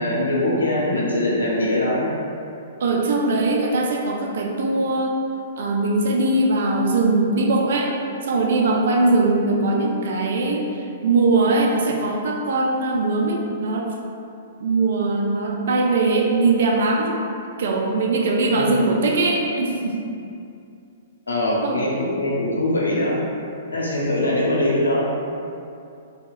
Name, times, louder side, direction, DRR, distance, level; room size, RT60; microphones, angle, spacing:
voice 1, 0.0-2.1 18.5-18.9 21.3-23.2 23.7-25.1, left 1 dB, 80° left, -5 dB, 0.6 m, -22 dB
voice 2, 2.8-5.2 5.6-7.9 8.2-13.9 14.6-17.2 17.6-20.0 21.6-21.8, right 2 dB, 60° right, 0 dB, 0.4 m, -21 dB
2.8 x 2.3 x 2.5 m, 2.5 s
figure-of-eight pair, 115°, 0 cm